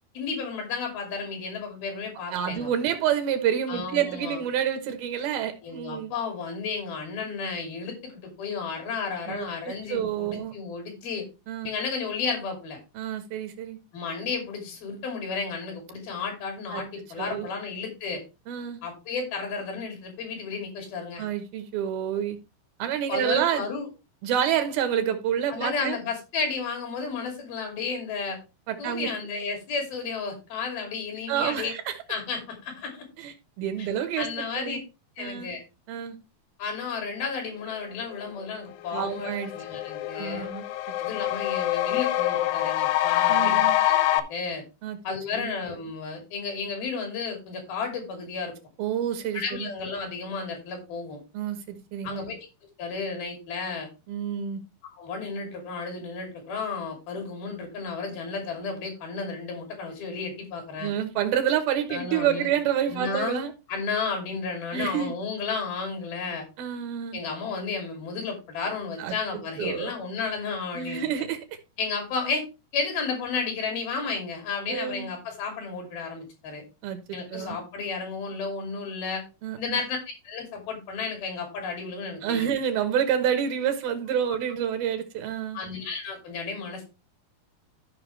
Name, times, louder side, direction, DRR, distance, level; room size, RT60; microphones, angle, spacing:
voice 1, 0.1-2.7 3.7-4.4 5.6-11.3 11.6-12.8 13.9-18.2 18.8-21.2 23.1-23.9 25.5-28.4 28.8-31.7 32.1-33.1 33.8-33.9 34.2-34.8 35.2-35.6 36.6-40.5 41.0-44.6 45.0-48.5 49.3-51.2 52.0-52.4 52.8-53.9 55.0-60.9 61.9-62.5 62.9-63.4 63.7-66.4 67.1-71.1 71.8-72.5 72.7-76.6 77.1-79.2 79.6-80.0 80.2-82.5 85.5-86.9, left 5 dB, 65° left, 3 dB, 4.5 m, -33 dB
voice 2, 2.3-6.1 9.3-10.5 11.5-11.7 13.0-13.8 16.7-16.8 17.2-17.5 18.5-18.8 21.2-22.4 22.8-23.6 24.2-26.0 28.7-29.1 31.3-31.9 33.2-34.8 35.2-35.5 35.9-36.2 38.9-39.5 40.2-40.6 43.3-43.8 44.8-45.0 45.3-45.5 48.8-49.7 51.3-52.2 54.1-54.6 60.8-63.5 64.7-65.2 66.6-67.2 69.0-69.1 69.6-69.9 70.7-71.4 74.7-75.1 76.8-77.0 77.3-77.6 79.4-79.8 82.2-85.6, right 9 dB, 75° right, 8 dB, 2.9 m, -28 dB
sound 1, 38.4-38.5 38.9-44.2, left 14 dB, 90° left, 2.8 m, -25 dB
13.5 x 5.8 x 3.2 m, 0.27 s
omnidirectional pair, 4.6 m